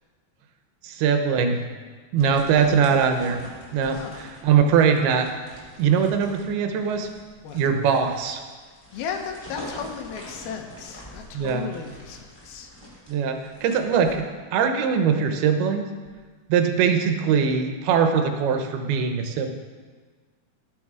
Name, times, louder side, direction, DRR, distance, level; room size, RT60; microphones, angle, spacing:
voice 1, 0.8-1.6 2.1-3.4 3.7-5.3 5.8-7.1 7.5-8.4 11.3-11.7 13.1-14.3 14.5-15.9 16.5-19.5, right 6 dB, 90° right, 6 dB, 2.9 m, -21 dB
sound 1, 2.2-14.1, left 1 dB, 10° left, 3.0 m, -45 dB
voice 2, 3.8-4.3 7.4-7.6 8.6-12.7, left 7 dB, 80° left, 4 dB, 3.1 m, -36 dB
19.0 x 7.0 x 5.0 m, 1.5 s
omnidirectional pair, 4.3 m